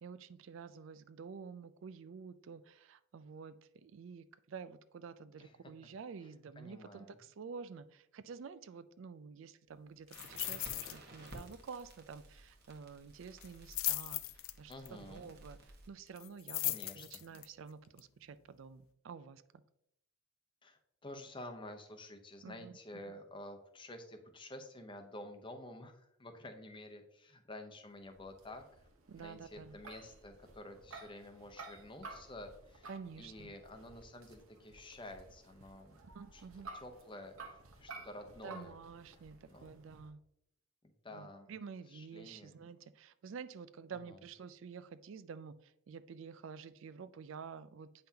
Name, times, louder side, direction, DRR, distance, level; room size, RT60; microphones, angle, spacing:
voice 1, 0.0-19.6 22.4-23.2 29.1-29.8 32.9-33.5 36.1-36.7 38.4-40.2 41.1-48.1, right 5 dB, 65° right, 14 dB, 0.4 m, -50 dB
voice 2, 6.6-7.1 14.7-15.3 16.6-17.1 20.6-28.9 29.1-32.9 33.2-36.0 36.3-36.4 36.7-37.4 37.8-38.7 39.5-39.7 41.0-41.5 41.9-42.5 43.9-44.2, left 1 dB, 25° left, 5 dB, 0.8 m, -50 dB
sound 1, 10.1-11.0 11.3-11.5 11.8-11.9 13.4-14.9 16.2-17.5 18.0-18.1, left 18 dB, 70° left, 0.4 m, -38 dB
Crackle, 10.1-15.9, right 1 dB, 50° right, 1.3 m, -55 dB
sound 2, 28.0-40.1, right 3 dB, 85° right, 1.1 m, -54 dB
8.6 x 5.7 x 2.8 m, 0.75 s
head